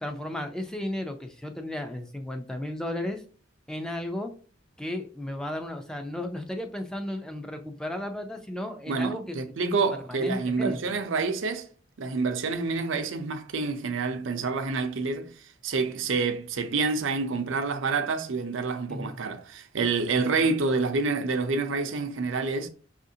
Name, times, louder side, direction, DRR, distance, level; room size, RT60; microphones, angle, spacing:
voice 1, 0.0-3.2 3.7-4.3 4.8-9.4 9.6-9.8 10.1-10.8 18.9-19.2 20.2-20.4, left 1 dB, 5° left, 0.4 m, -34 dB
voice 2, 8.9-11.7 12.0-15.3 15.6-22.7, right 4 dB, 75° right, 0.5 m, -28 dB
5.7 x 2.5 x 2.7 m
head